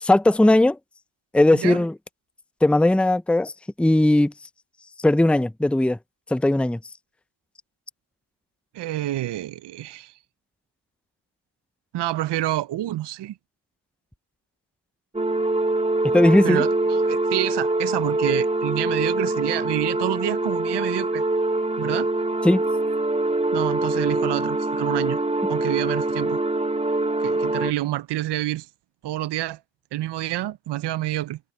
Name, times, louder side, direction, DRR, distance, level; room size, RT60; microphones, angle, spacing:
voice 1, 0.0-0.8 1.3-1.9 2.6-3.5 3.8-4.3 5.0-6.0 6.3-6.8 16.0-16.6 22.4-22.6, left 1 dB, ahead, 0.8 m, -18 dB
voice 2, 8.7-10.1 11.9-13.4 16.4-21.2 21.8-22.1 23.5-25.2 25.5-26.4 27.2-28.7 29.0-29.6 29.9-31.4, right 15 dB, 65° right, 0.7 m, -28 dB
sound 1, 15.1-27.7, right 2 dB, 15° right, 2.8 m, -24 dB
supercardioid pair, 45°, 45 cm